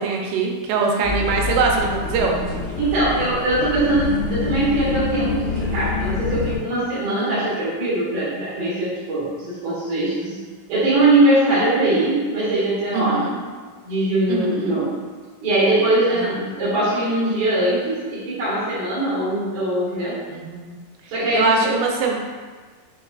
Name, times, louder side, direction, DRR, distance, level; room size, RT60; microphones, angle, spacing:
voice 1, 0.0-2.4 7.1-7.4 12.9-13.4 14.3-14.8 16.1-16.3 20.3-20.7 21.3-22.2, right 4 dB, 90° right, 0 dB, 2.6 m, -22 dB
sound 1, 1.0-6.6, left 4 dB, 90° left, 2.6 m, -26 dB
voice 2, 2.8-10.4 10.7-13.3 13.8-14.9 15.4-20.2 21.1-21.7, right 1 dB, 70° right, -10 dB, 2.5 m, -21 dB
6.2 x 2.4 x 2.3 m, 1.5 s
omnidirectional pair, 4.6 m